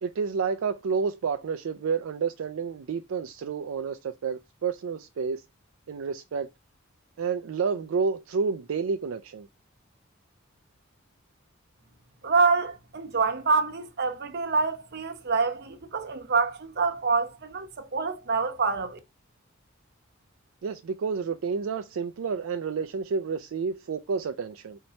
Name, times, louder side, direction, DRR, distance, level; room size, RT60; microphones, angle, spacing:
voice 1, 0.0-5.4 5.9-6.5 7.2-9.5 20.6-24.8, right 5 dB, 75° right, 0.4 m, -30 dB
voice 2, 12.2-19.0, right 4 dB, 55° right, 0.9 m, -26 dB
4.4 x 2.8 x 4.1 m
head